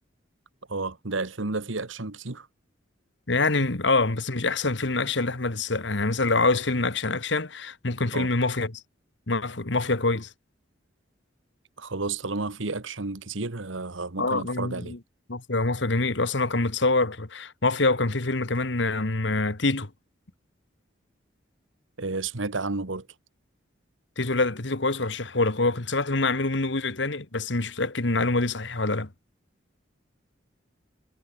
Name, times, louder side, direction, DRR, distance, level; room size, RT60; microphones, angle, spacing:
voice 1, 0.7-2.5 8.1-8.3 11.8-14.9 22.0-23.1, right 3 dB, 80° right, 1.5 m, -31 dB
voice 2, 3.3-8.8 9.3-10.3 14.2-15.0 15.3-19.9 24.2-29.1, left 3 dB, 65° left, 1.7 m, -25 dB
head